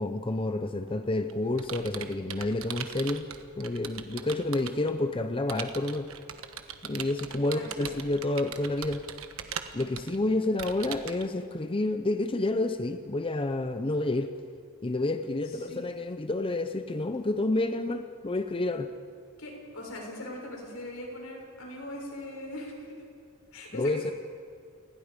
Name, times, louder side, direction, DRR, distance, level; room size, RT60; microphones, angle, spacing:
voice 1, 0.0-3.3 3.6-6.1 6.8-9.0 9.7-14.3 14.8-18.9 23.7-24.1, left 2 dB, 25° left, 8 dB, 0.7 m, -29 dB
Computer keyboard, 0.8-4.9 5.5-11.3, right 8 dB, 75° right, 1.2 m, -40 dB
voice 2, 7.4-7.9 15.5-15.8 19.4-22.9 23.5-24.1, left 1 dB, 85° left, -1 dB, 6.8 m, -40 dB
29.0 x 20.0 x 5.2 m, 2.4 s
head